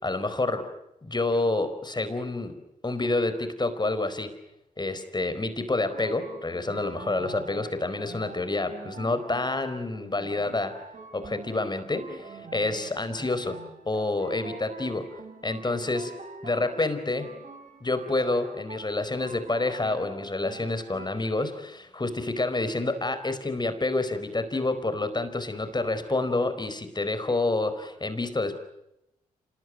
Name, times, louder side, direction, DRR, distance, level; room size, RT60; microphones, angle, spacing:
voice 1, 0.0-0.7 1.0-2.6 2.8-4.3 4.8-10.7 11.1-13.6 13.8-15.1 15.4-16.1 16.4-17.3 17.8-28.6, left 2 dB, 30° left, 11 dB, 4.6 m, -28 dB
sound 1, 5.7-21.1, right 4 dB, 55° right, 5.1 m, -45 dB
26.5 x 20.5 x 9.5 m, 0.85 s
supercardioid pair, 50°, 16 cm